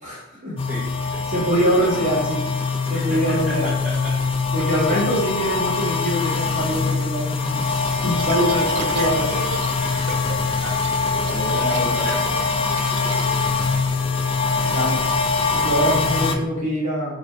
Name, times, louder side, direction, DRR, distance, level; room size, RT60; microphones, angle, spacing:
voice 1, 0.0-0.6 1.3-2.4 2.9-3.7 4.5-9.4 14.6-15.0 15.5-17.2, equal, 35° right, -5 dB, 1.6 m, -24 dB
sound 1, 0.6-16.4, left 4 dB, 25° left, 0.3 m, -23 dB
voice 2, 0.6-2.2 2.9-4.1 4.9-5.1 9.8-10.1 10.4-13.6 15.7-15.8, left 1 dB, 5° right, -8 dB, 0.9 m, -34 dB
sound 2, 8.2-9.7 10.0-10.4 10.6-13.2, right 5 dB, 85° right, 0.5 m, -33 dB
4.4 x 2.6 x 4.4 m, 0.85 s
head